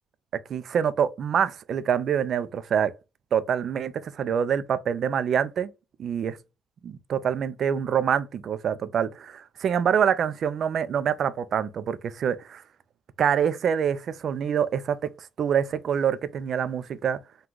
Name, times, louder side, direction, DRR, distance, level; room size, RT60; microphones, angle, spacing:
voice 1, 0.3-2.9 3.3-5.7 6.0-6.4 6.8-12.6 13.2-15.1 15.4-17.2, right 8 dB, 60° right, 0.4 m, -26 dB
3.8 x 2.3 x 4.5 m
cardioid pair, 90°, 0 cm